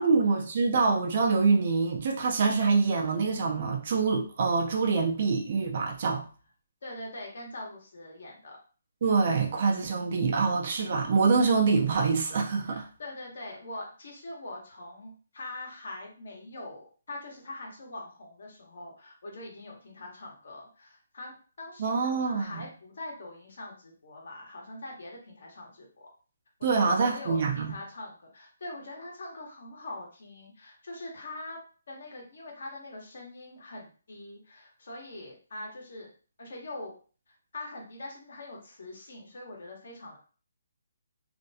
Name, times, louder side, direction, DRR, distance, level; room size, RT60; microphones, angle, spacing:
voice 1, 0.0-6.2 9.0-12.9 21.8-22.6 26.6-27.7, right 4 dB, 50° right, 2 dB, 0.5 m, -25 dB
voice 2, 6.8-8.6 12.7-26.1 26.6-31.6 31.9-36.1 36.4-36.9 37.5-40.2, left 2 dB, 65° left, 0 dB, 1.0 m, -43 dB
2.5 x 2.2 x 2.7 m, 0.39 s
hypercardioid pair, 155°, 0 cm